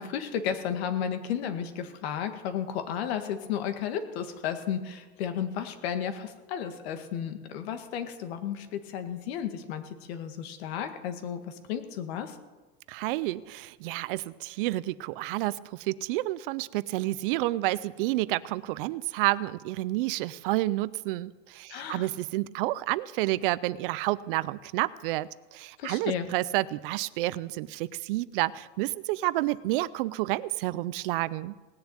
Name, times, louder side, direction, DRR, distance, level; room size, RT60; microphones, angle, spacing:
voice 1, 0.0-12.4 21.7-22.1 25.8-26.3, left 8 dB, 65° left, 8 dB, 2.0 m, -33 dB
voice 2, 12.9-31.5, right 17 dB, 55° right, 19 dB, 0.5 m, -30 dB
18.5 x 7.0 x 8.9 m, 1.2 s
supercardioid pair, 155°, 34 cm